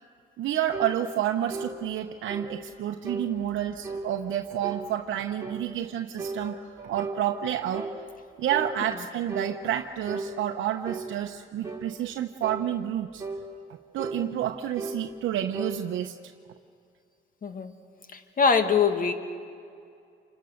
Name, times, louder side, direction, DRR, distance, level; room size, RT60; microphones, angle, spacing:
voice 1, 0.4-7.9 8.4-13.2 13.9-16.2, right 11 dB, 75° right, 4 dB, 0.9 m, -29 dB
sound 1, 0.7-1.0 1.5-1.7 2.3-2.5 3.0-3.3 3.8-4.1 4.6-4.9 5.4-5.6 6.2-7.2 7.7-8.0 8.5-8.8 9.3-9.5 10.1-10.3 10.8-11.1 11.6-11.9 12.4-12.7 13.2-13.4 14.0-14.2 14.8-15.0 15.5-15.8, right 3 dB, 15° right, 3.8 m, -35 dB
voice 2, 17.4-17.7 18.1-19.1, left 5 dB, 45° left, 7 dB, 2.2 m, -23 dB
27.5 x 25.5 x 6.6 m, 2.4 s
cardioid pair, 90°, 20 cm